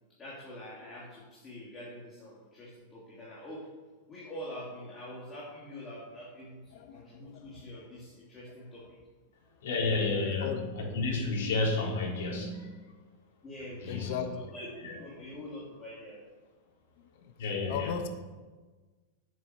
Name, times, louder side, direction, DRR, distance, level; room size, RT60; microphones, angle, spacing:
voice 1, 0.2-3.7 4.1-9.0 13.4-16.2, equal, 15° left, -6 dB, 2.8 m, -45 dB
voice 2, 6.7-7.6 10.4-10.6 13.9-14.5 17.2-17.3 17.7-18.1, left 8 dB, 50° left, 7 dB, 1.1 m, -37 dB
voice 3, 9.6-10.5 10.8-12.8 13.8-14.1 14.8-14.9 17.4-17.9, left 3 dB, 70° left, -2 dB, 4.1 m, -31 dB
9.2 x 7.9 x 8.1 m, 1.3 s
supercardioid pair, 165°, 0 cm